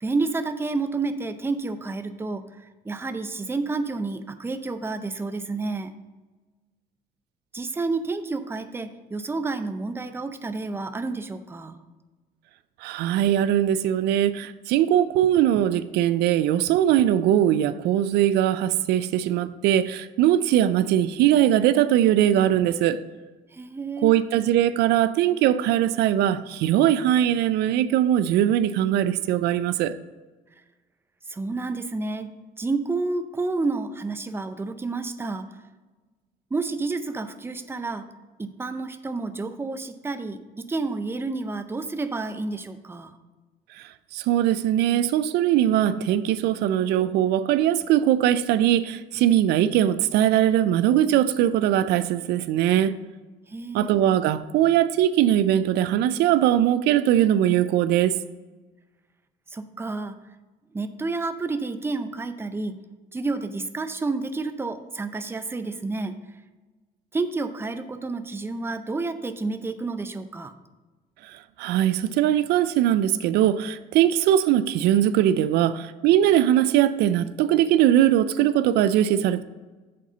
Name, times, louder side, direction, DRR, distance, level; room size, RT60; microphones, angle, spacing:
voice 1, 0.0-5.9 7.5-11.8 23.5-24.2 31.3-35.5 36.5-38.1 38.4-43.2 53.5-54.0 59.5-60.2 60.7-62.8 63.1-66.2 67.1-70.5, right 3 dB, 15° right, 9 dB, 0.5 m, -30 dB
voice 2, 12.8-23.0 24.0-29.9 43.7-52.9 53.7-58.1 71.2-79.4, right 11 dB, 80° right, 14 dB, 0.4 m, -21 dB
7.5 x 4.1 x 6.6 m, 1.2 s
cardioid pair, 110°, 17 cm